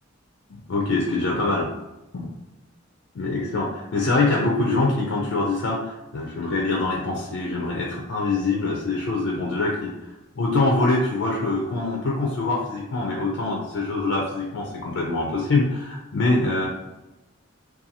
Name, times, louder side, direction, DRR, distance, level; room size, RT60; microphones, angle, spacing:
voice 1, 0.5-1.7 2.1-2.3 3.1-9.9 10.4-16.7, left 2 dB, 80° left, -2 dB, 0.4 m, -24 dB
2.7 x 2.2 x 2.7 m, 0.99 s
head